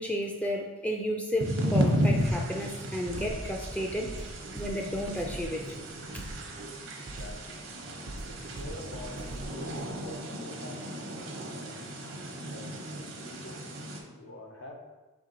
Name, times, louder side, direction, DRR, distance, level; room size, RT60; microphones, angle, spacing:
voice 1, 0.0-4.1 4.5-5.8 6.1-6.2, equal, 5° left, 1 dB, 0.3 m, -32 dB
sound 1, 1.4-14.0, equal, 75° right, 0.8 m, -34 dB
sound 2, 2.2-3.6 4.1-7.6 8.1-10.2, right 2 dB, 60° right, 0.4 m, -43 dB
sound 3, 3.0-6.0 6.3-6.4, equal, 60° left, 0.7 m, -44 dB
voice 2, 7.0-7.6 8.2-10.8 11.4-11.9 12.4-14.8, left 1 dB, 90° left, 1 dB, 0.8 m, -46 dB
4.3 x 3.1 x 3.8 m, 1.1 s
head